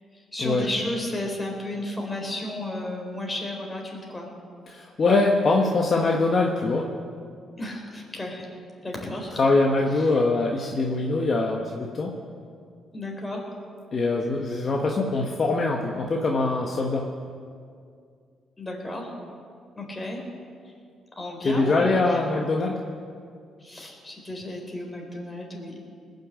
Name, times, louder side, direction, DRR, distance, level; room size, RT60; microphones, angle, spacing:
voice 1, 0.3-4.3 7.6-8.5 8.8-9.3 10.0-10.1 12.9-13.4 18.6-19.1 19.8-20.2 21.2-22.3 23.6-25.8, left 1 dB, 15° left, 0 dB, 3.9 m, -33 dB
voice 2, 4.7-6.9 9.4-12.1 13.9-17.0 21.4-22.8, left 3 dB, 45° left, 0 dB, 1.3 m, -23 dB
20.0 x 6.8 x 8.4 m, 2.2 s
cardioid pair, 90°, 0 cm